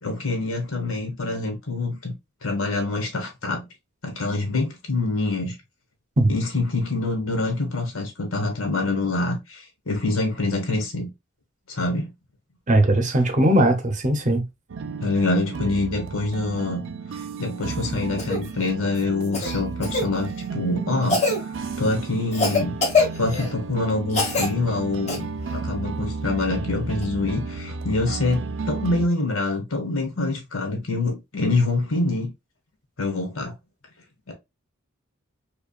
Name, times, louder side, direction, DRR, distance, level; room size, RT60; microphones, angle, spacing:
voice 1, 0.0-2.1 2.4-3.7 4.0-5.5 6.3-11.1 11.7-12.1 15.0-16.8 17.1-25.3 25.5-32.3 33.0-33.5 34.3-34.4, left 2 dB, 75° left, 1.6 m, -25 dB
voice 2, 12.7-14.4, right 1 dB, 35° right, 0.8 m, -19 dB
sound 1, 14.7-29.1, right 4 dB, 60° right, 0.4 m, -33 dB
Cough, 18.2-18.4 19.3-20.1 21.1-21.4 22.3-23.5 24.1-24.5 25.1-25.2 27.0-27.1, left 3 dB, 35° left, 1.3 m, -23 dB
4.9 x 2.5 x 2.4 m
head